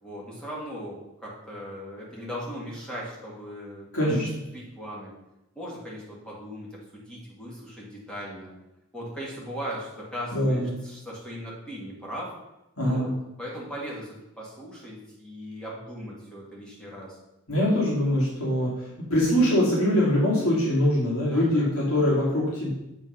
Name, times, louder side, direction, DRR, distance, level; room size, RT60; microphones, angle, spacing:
voice 1, 0.0-4.2 4.5-5.1 5.5-8.5 8.9-12.3 12.8-13.1 13.4-17.2 21.3-21.7, equal, 5° left, -5 dB, 2.2 m, -38 dB
voice 2, 3.9-4.3 10.3-10.7 12.8-13.1 17.5-22.7, left 1 dB, 85° left, -5 dB, 2.4 m, -23 dB
7.8 x 4.4 x 5.6 m, 0.93 s
head